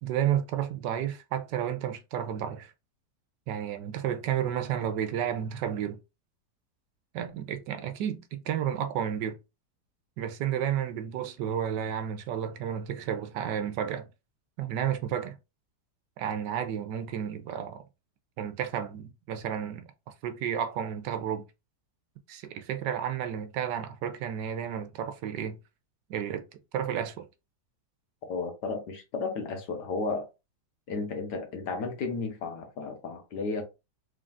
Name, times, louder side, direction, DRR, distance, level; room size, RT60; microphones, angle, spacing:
voice 1, 0.0-2.7 3.5-6.0 7.1-9.4 10.2-14.1 14.6-15.4 16.2-17.8 18.4-19.9 20.2-21.4 22.3-25.6 26.1-27.3, right 9 dB, 80° right, 1.3 m, -32 dB
voice 2, 28.3-30.3 30.9-33.6, left 4 dB, 75° left, 1.6 m, -33 dB
3.7 x 3.7 x 2.5 m
omnidirectional pair, 1.8 m